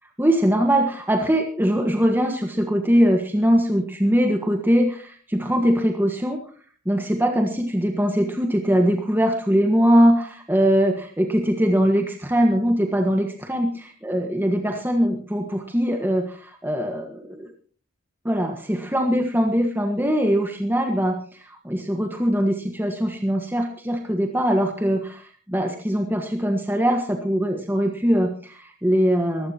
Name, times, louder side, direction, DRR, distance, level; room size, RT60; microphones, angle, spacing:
voice 1, 0.2-6.4 6.8-17.5 18.2-29.5, equal, 10° right, 4 dB, 1.5 m, -21 dB
21.5 x 16.0 x 2.9 m, 0.42 s
head